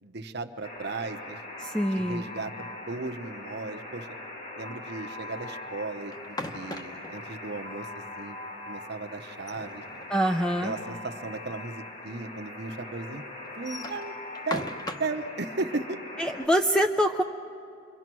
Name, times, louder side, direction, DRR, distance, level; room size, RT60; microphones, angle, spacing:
voice 1, 0.0-1.4 1.9-4.1 4.6-7.9 8.2-8.4 8.7-9.8 10.6-13.2 13.6-14.1 14.5-14.7 15.0-16.0, right 3 dB, 55° right, 6 dB, 1.0 m, -36 dB
Alarm, 0.6-16.5, left 2 dB, 40° left, 2.7 m, -41 dB
voice 2, 1.6-2.2 10.1-10.7 16.2-17.2, equal, 5° left, 5 dB, 0.5 m, -25 dB
sound 1, 6.1-7.2 9.3-10.5 10.9-11.0 11.3-11.4 12.2-12.3 13.4-15.2, left 1 dB, 20° left, 1.0 m, -38 dB
27.5 x 23.5 x 6.2 m, 2.6 s
head